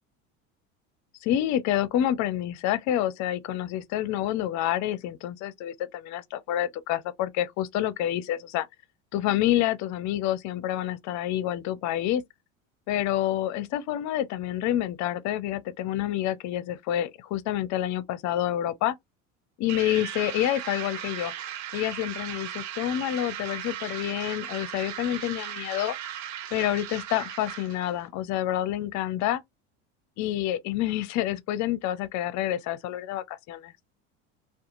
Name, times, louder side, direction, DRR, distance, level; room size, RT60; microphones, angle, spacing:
voice 1, 1.2-8.7 9.1-12.2 12.9-19.0 19.6-21.3 21.7-26.0 26.5-29.4 30.2-33.7, left 12 dB, 45° left, 0.5 m, -28 dB
sound 1, 19.7-28.0, right 11 dB, 45° right, 0.6 m, -37 dB
2.7 x 2.3 x 2.4 m
hypercardioid pair, 90°, 39 cm